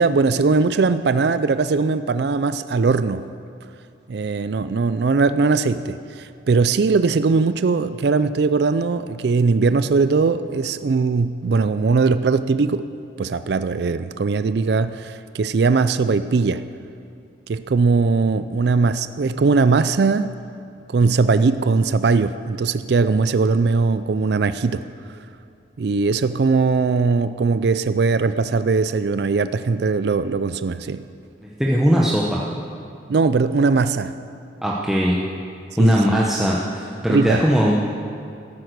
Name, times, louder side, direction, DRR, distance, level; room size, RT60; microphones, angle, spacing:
voice 1, 0.0-3.3 4.1-12.9 13.2-16.6 17.5-20.4 20.9-24.8 25.8-31.0 33.1-34.2 35.8-36.2 37.1-37.4, right 4 dB, 60° right, 12 dB, 0.4 m, -20 dB
voice 2, 31.4-32.4 34.6-35.2 35.8-37.7, equal, ahead, -5 dB, 0.9 m, -19 dB
14.0 x 10.5 x 6.6 m, 2.5 s
head